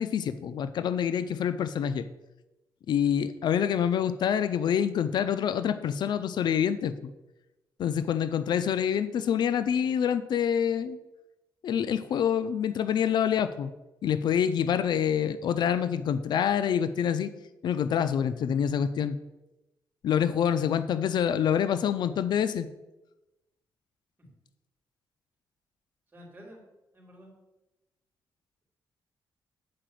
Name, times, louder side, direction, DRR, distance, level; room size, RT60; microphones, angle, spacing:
voice 1, 0.0-2.1 2.9-6.9 7.8-11.0 11.6-13.7 14.0-17.3 17.6-19.2 20.0-22.7, left 8 dB, 70° left, 12 dB, 0.5 m, -26 dB
voice 2, 26.1-26.6 26.9-27.3, equal, 25° right, -1 dB, 3.6 m, -50 dB
8.6 x 4.9 x 7.6 m, 0.99 s
cardioid pair, 110°, 8 cm